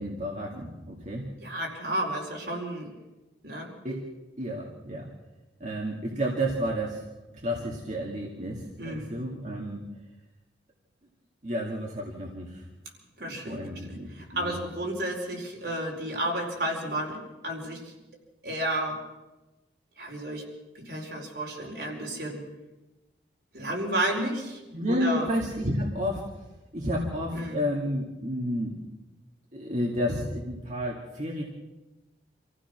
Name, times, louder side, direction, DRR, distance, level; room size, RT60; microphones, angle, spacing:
voice 1, 0.0-1.2 3.8-4.1 4.4-5.1 5.6-7.0 7.3-9.8 11.4-12.7 13.5-14.6 21.8-21.9 24.7-26.5 26.7-28.8 29.5-31.4, equal, 40° right, -2 dB, 2.5 m, -31 dB
voice 2, 1.4-2.9 3.4-3.7 8.8-9.1 13.2-13.6 13.9-17.9 18.4-19.0 20.0-20.4 20.7-22.4 23.5-24.6 24.9-25.3 27.3-27.6, right 1 dB, 65° right, 0 dB, 4.5 m, -32 dB
27.0 x 15.5 x 6.2 m, 1.1 s
head